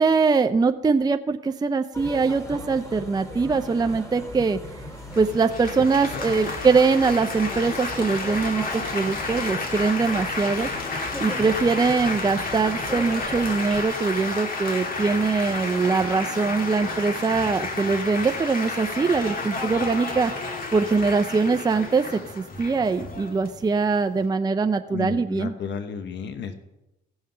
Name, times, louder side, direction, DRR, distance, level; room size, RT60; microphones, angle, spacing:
voice 1, 0.0-4.6 5.2-10.7 11.2-20.3 20.7-22.1 22.3-25.5, right 4 dB, 20° right, 8 dB, 0.5 m, -22 dB
sound 1, 1.9-13.8, left 1 dB, 15° left, 2.7 m, -38 dB
Laughter / Applause / Chatter, 5.1-24.3, left 3 dB, 45° left, 1.9 m, -31 dB
voice 2, 24.9-26.5, left 6 dB, 65° left, 8 dB, 1.0 m, -32 dB
15.5 x 5.6 x 5.7 m, 0.95 s
cardioid pair, 90°, 20 cm